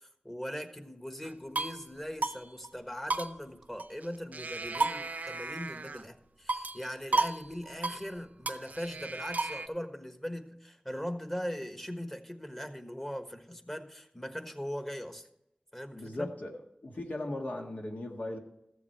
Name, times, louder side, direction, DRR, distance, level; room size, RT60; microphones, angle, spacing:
voice 1, 0.0-15.3 15.7-16.3, equal, 15° left, 7 dB, 1.3 m, -40 dB
sound 1, 1.2-1.8 2.2-2.4 2.6-2.7 3.1-4.1 4.3-6.1 6.5-6.8 7.1-7.4 7.6-8.0 8.5-9.7, right 3 dB, 80° right, 0.6 m, -33 dB
voice 2, 15.9-16.5 16.8-18.4, left 1 dB, 75° left, 1 dB, 1.7 m, -37 dB
14.0 x 7.3 x 4.6 m, 0.83 s
wide cardioid pair, 60°, 3 cm